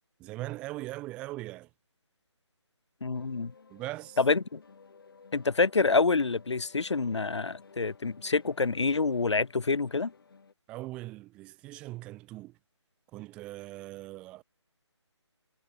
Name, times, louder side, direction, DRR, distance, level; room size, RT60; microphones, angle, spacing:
voice 1, 0.2-1.7 3.7-4.2 10.7-12.6 13.1-14.4, right 18 dB, 5° right, 0.6 m, -40 dB
voice 2, 3.0-3.5 4.2-4.6 5.3-10.1, left 4 dB, 70° left, 0.7 m, -27 dB
sound 1, 3.1-10.5, left 5 dB, 50° left, 7.3 m, -56 dB
figure-of-eight pair, 155°, 15 cm